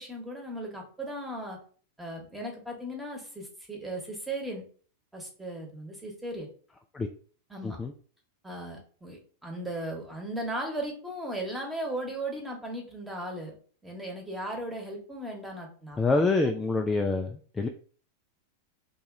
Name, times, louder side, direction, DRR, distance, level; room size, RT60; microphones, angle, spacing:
voice 1, 0.0-1.6 2.0-4.6 5.1-6.5 7.5-7.8 8.4-13.5 13.8-16.0, right 1 dB, 5° right, 0 dB, 1.1 m, -37 dB
voice 2, 16.0-17.7, left 3 dB, 15° left, 5 dB, 0.3 m, -26 dB
3.0 x 2.9 x 3.6 m, 0.43 s
figure-of-eight pair, 90°, 0 cm